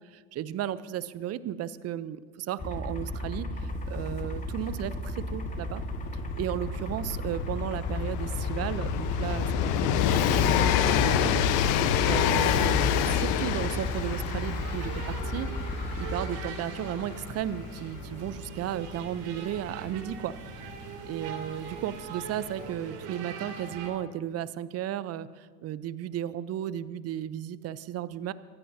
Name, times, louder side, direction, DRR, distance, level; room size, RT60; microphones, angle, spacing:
voice 1, 0.0-5.8 6.4-11.4 12.1-20.3 21.0-28.3, right 11 dB, 35° right, 16 dB, 0.7 m, -34 dB
sound 1, 2.6-16.3, left 1 dB, 15° left, 1.7 m, -34 dB
Train, 3.8-3.9 4.1-20.7 21.7-21.8, left 9 dB, 55° left, 1.1 m, -28 dB
sound 2, 13.7-23.9, right 5 dB, 55° right, 3.0 m, -41 dB
24.0 x 15.5 x 2.8 m, 1.5 s
hypercardioid pair, 95°, 44 cm